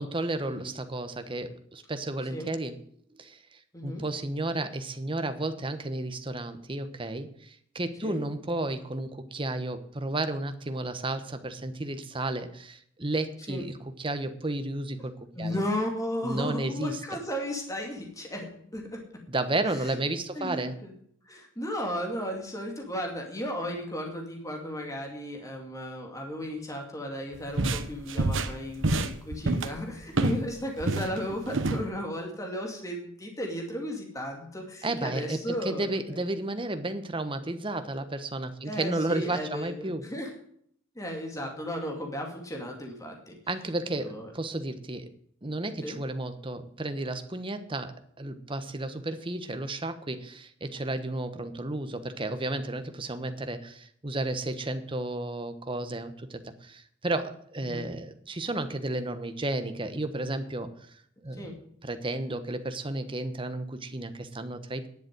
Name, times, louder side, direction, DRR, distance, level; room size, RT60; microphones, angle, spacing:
voice 1, 0.0-2.7 3.1-3.4 3.8-15.6 16.2-17.0 19.3-20.7 34.8-40.0 43.5-45.1 45.4-60.7 61.2-64.9, right 2 dB, 25° right, 9 dB, 1.1 m, -33 dB
voice 2, 15.4-19.0 20.3-20.9 21.3-36.2 38.7-40.3 41.0-43.4 44.0-44.3 45.8-46.0 57.6-57.9 61.4-61.5, equal, 15° left, 2 dB, 2.4 m, -35 dB
sound 1, 27.3-30.5 30.8-31.8, right 2 dB, 75° right, 1.0 m, -28 dB
11.0 x 7.3 x 9.3 m, 0.65 s
head